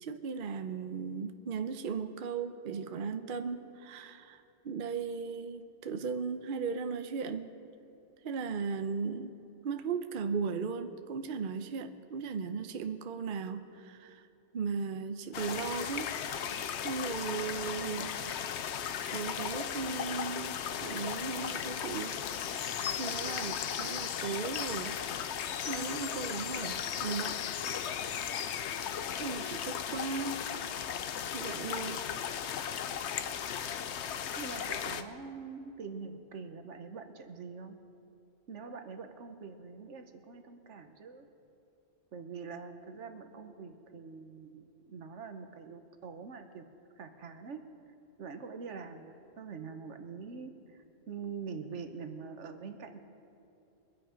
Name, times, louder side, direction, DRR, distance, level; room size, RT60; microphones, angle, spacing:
voice 1, 0.0-7.5 8.2-9.4 9.6-14.3 14.5-16.1 16.8-18.2 19.1-22.1 23.0-25.0 25.7-27.4 27.8-28.3 29.2-30.6 31.3-32.1, right 5 dB, 50° right, 8 dB, 0.7 m, -37 dB
sound 1, 15.3-35.0, left 8 dB, 70° left, 0.9 m, -36 dB
voice 2, 34.4-37.8 38.5-41.3 42.1-46.7 47.0-47.6 48.2-53.0, right 5 dB, 80° right, 7 dB, 1.3 m, -44 dB
23.0 x 9.2 x 5.1 m, 2.9 s
omnidirectional pair, 1.2 m